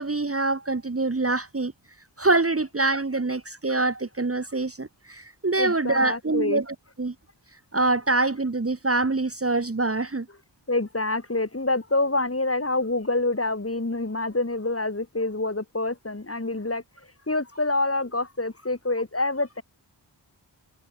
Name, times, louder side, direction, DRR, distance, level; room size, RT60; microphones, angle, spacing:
voice 1, 0.0-1.7 2.2-7.1 7.7-10.3, right 2 dB, 30° right, 1.5 m, -25 dB
voice 2, 5.6-6.6 10.3-10.4 10.7-16.8 17.3-19.6, left 2 dB, 30° left, 4.0 m, -26 dB
wide cardioid pair, 65°, 44 cm